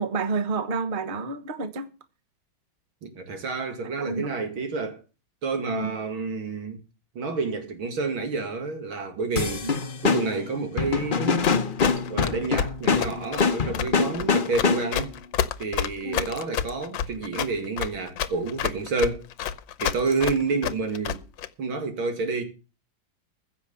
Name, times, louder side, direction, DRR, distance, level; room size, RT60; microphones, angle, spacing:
voice 1, 0.0-1.9 4.0-4.3 5.7-6.0 9.6-9.7 16.0-16.3, right 4 dB, 30° right, 1.1 m, -29 dB
voice 2, 3.0-5.0 5.4-6.8 7.1-11.5 12.1-15.1 15.6-19.3 19.8-21.2 21.6-22.4, right 4 dB, 85° right, 3.1 m, -29 dB
sound 1, 9.3-15.1, left 5 dB, 40° left, 0.8 m, -25 dB
Run, 11.4-21.5, left 9 dB, 75° left, 1.5 m, -29 dB
15.5 x 6.8 x 6.9 m
omnidirectional pair, 2.2 m